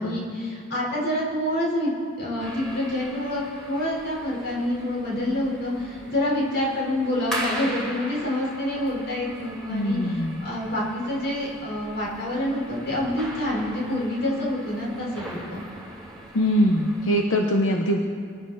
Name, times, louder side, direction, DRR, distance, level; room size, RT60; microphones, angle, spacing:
voice 1, 0.0-1.9 2.2-10.0 10.4-15.6, left 1 dB, 55° left, -4 dB, 4.6 m, -27 dB
sound 1, 2.4-17.2, right 1 dB, 5° left, 2.9 m, -39 dB
voice 2, 9.7-10.5 16.3-18.0, equal, 85° left, 2 dB, 1.1 m, -22 dB
23.5 x 12.0 x 4.2 m, 2.3 s
head